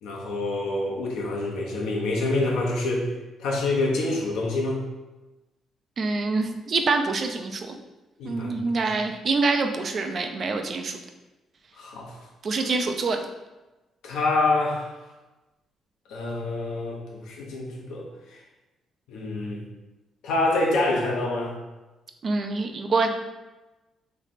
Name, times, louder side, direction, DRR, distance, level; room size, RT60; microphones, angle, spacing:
voice 1, 0.0-3.1 3.4-4.8 8.2-8.9 11.8-12.2 14.0-14.9 16.1-18.1 18.3-18.4 19.1-19.6 20.2-21.5, left 2 dB, 90° left, -1 dB, 0.9 m, -26 dB
voice 2, 6.0-7.8 8.2-11.0 12.4-13.2 22.2-23.1, right 3 dB, 50° right, 5 dB, 0.5 m, -25 dB
3.3 x 3.2 x 4.0 m, 1.1 s
cardioid pair, 90°, 0 cm